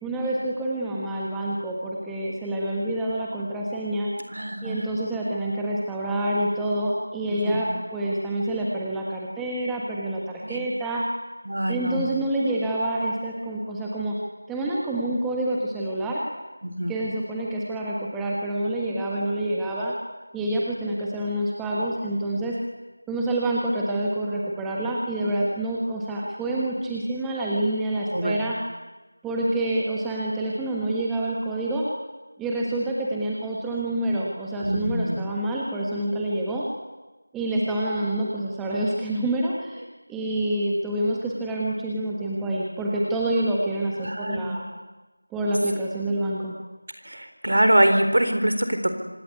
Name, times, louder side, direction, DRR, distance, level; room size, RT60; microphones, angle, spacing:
voice 1, 0.0-4.1 4.6-11.0 11.7-14.2 14.5-16.2 16.9-19.9 20.3-22.6 23.1-28.6 29.2-31.9 32.4-36.6 37.3-39.8 40.1-44.6 45.3-46.5, right 1 dB, 5° right, -4 dB, 1.3 m, -27 dB
voice 2, 4.3-4.9 7.3-7.6 10.4-10.6 11.5-12.0 16.6-16.9 28.1-28.4 34.6-35.2 44.0-44.6 47.0-48.9, right 1 dB, 55° right, 7 dB, 4.1 m, -24 dB
26.0 x 19.0 x 9.6 m, 1.2 s
figure-of-eight pair, 170°, 0 cm